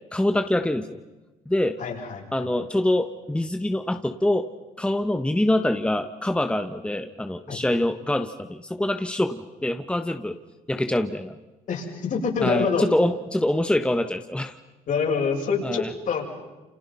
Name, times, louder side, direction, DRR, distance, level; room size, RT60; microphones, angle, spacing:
voice 1, 0.1-1.0 1.5-1.8 2.3-4.5 4.8-10.4 10.7-11.4 12.4-14.6 15.6-15.9, left 1 dB, 5° left, 7 dB, 1.4 m, -25 dB
voice 2, 1.8-2.5 7.5-7.6 11.7-12.8 14.9-16.3, left 5 dB, 55° left, 0 dB, 7.4 m, -26 dB
30.0 x 27.0 x 5.7 m, 1.1 s
supercardioid pair, 80°, 16 cm